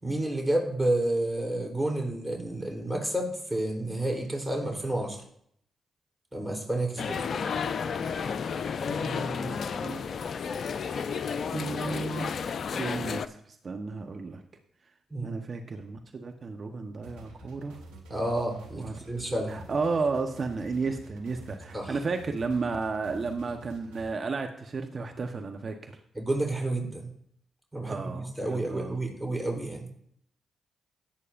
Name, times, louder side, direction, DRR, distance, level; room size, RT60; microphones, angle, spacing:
voice 1, 0.0-5.2 6.3-7.2 15.1-15.4 18.1-19.6 21.7-22.0 26.2-27.1 27.7-29.9, right 1 dB, 5° right, 0 dB, 3.7 m, -30 dB
sound 1, 7.0-13.3, left 6 dB, 60° left, 0.5 m, -32 dB
voice 2, 8.9-10.1 11.5-12.3 12.7-14.4 15.2-17.8 18.8-19.0 19.3-25.9 27.9-29.0, right 4 dB, 50° right, 4 dB, 1.1 m, -33 dB
sound 2, 17.0-24.1, right 2 dB, 90° right, 1.7 m, -49 dB
17.5 x 8.3 x 2.6 m, 0.69 s
hypercardioid pair, 40°, 0 cm